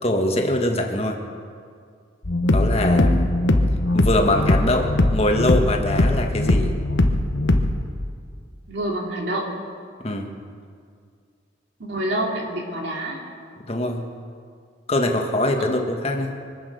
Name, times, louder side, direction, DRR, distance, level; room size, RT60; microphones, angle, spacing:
voice 1, 0.0-1.2 2.4-3.3 3.9-6.7 10.0-10.3 13.7-14.0 14.9-16.3, left 1 dB, 35° left, 3 dB, 1.5 m, -23 dB
sound 1, 2.2-7.8, left 1 dB, 75° left, 1.1 m, -20 dB
voice 2, 8.7-9.5 11.8-13.2 15.6-15.7, right 1 dB, 65° right, 0 dB, 2.7 m, -27 dB
24.0 x 8.7 x 6.8 m, 2.2 s
head